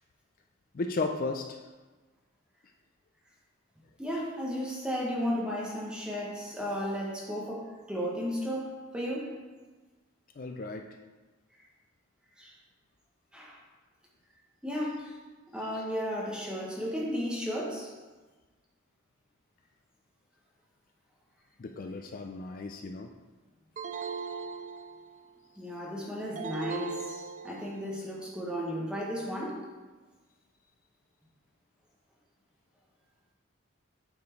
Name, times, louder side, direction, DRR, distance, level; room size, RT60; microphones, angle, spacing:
voice 1, 0.7-1.6 10.4-10.9 15.6-15.8 21.6-23.1, left 3 dB, 45° left, 5 dB, 0.4 m, -35 dB
voice 2, 4.0-9.4 12.4-12.5 13.3-13.6 14.6-15.2 15.5-17.9 25.6-29.7, equal, 5° right, -4 dB, 1.3 m, -34 dB
sound 1, 23.8-25.3 26.4-27.9, right 6 dB, 35° right, 0.4 m, -39 dB
8.6 x 4.4 x 4.5 m, 1.3 s
head